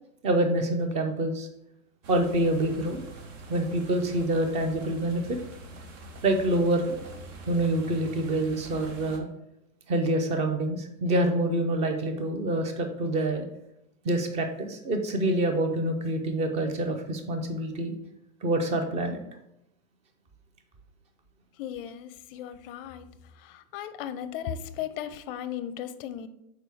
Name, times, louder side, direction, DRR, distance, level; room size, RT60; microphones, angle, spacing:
voice 1, 0.2-1.5 2.1-3.0 3.5-5.4 6.2-7.0 7.5-9.3 9.9-13.4 14.0-17.9 18.4-19.2, right 1 dB, 15° right, 6 dB, 0.5 m, -26 dB
sound 1, 2.0-9.2, right 2 dB, 60° right, 1.1 m, -44 dB
voice 2, 21.6-23.1 23.3-26.3, left 10 dB, 40° left, 12 dB, 0.5 m, -36 dB
6.1 x 4.6 x 3.4 m, 0.81 s
hypercardioid pair, 130°, 43 cm